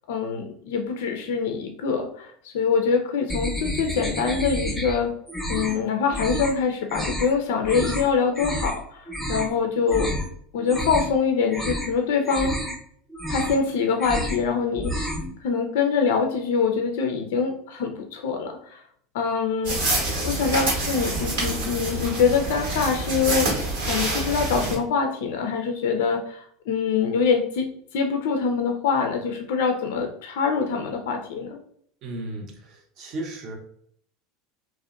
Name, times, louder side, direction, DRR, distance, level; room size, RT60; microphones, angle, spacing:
voice 1, 0.1-5.1 5.5-10.1 10.5-12.5 13.3-15.1 15.4-18.8 19.1-27.7 27.9-31.6, left 5 dB, 70° left, 3 dB, 0.3 m, -24 dB
sound 1, 3.3-5.0 5.3-5.8 6.1-6.5 6.9-7.3 7.6-8.0 8.3-8.8 9.1-9.5 9.9-10.3 10.6-11.2 11.5-11.9 12.2-12.8 13.1-13.6 13.9-14.4 14.7-15.3, equal, ahead, 0.7 m, -29 dB
sound 2, 19.6-24.8, right 2 dB, 75° right, 1.0 m, -27 dB
voice 2, 32.0-33.5, right 1 dB, 50° right, 1 dB, 0.6 m, -35 dB
2.6 x 2.0 x 2.3 m, 0.63 s
hypercardioid pair, 80°, 0 cm